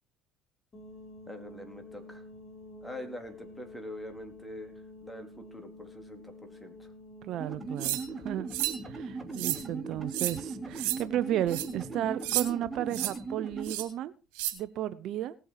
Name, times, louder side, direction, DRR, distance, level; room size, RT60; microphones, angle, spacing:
sound 1, 0.7-13.1, left 1 dB, 30° left, 4.8 m, -50 dB
voice 1, 1.3-2.2 2.8-4.7 5.0-6.9, left 1 dB, 5° left, 5 dB, 3.8 m, -44 dB
voice 2, 7.2-8.5 8.8-14.1 14.5-15.3, right 12 dB, 60° right, 15 dB, 0.8 m, -33 dB
sound 2, 7.4-13.7, right 4 dB, 15° right, 3.1 m, -39 dB
sound 3, 7.8-8.0 8.5-8.8 9.3-9.6 10.1-10.4 10.8-11.0 11.5-11.7 12.2-12.5 12.9-13.1 13.6-13.9 14.4-14.5, right 15 dB, 85° right, 2.5 m, -31 dB
18.5 x 7.9 x 4.8 m, 0.32 s
supercardioid pair, 95°, 0 cm